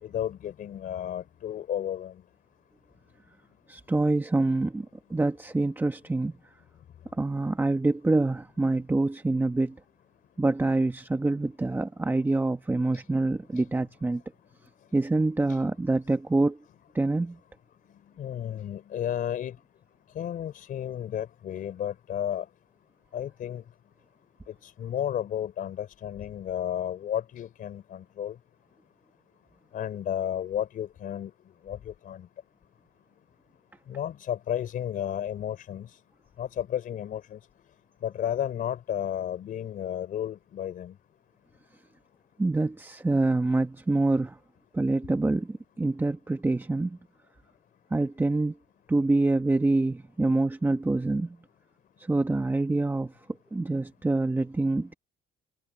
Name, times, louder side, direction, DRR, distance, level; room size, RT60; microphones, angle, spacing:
voice 1, 0.0-2.2 12.9-13.0 13.5-13.6 15.5-15.6 18.2-19.6 20.1-22.5 23.1-23.6 24.5-28.4 29.7-31.3 31.6-32.3 33.9-36.0 36.4-37.4 38.0-41.0, left 10 dB, 55° left, 3.4 m, -33 dB
voice 2, 3.7-6.3 7.1-9.8 10.4-14.2 14.9-16.6 16.9-17.4 42.4-44.4 44.7-47.0 47.9-48.5 48.9-51.4 52.0-53.1 53.5-54.9, right 2 dB, 10° right, 1.4 m, -26 dB
cardioid pair, 110°, 17 cm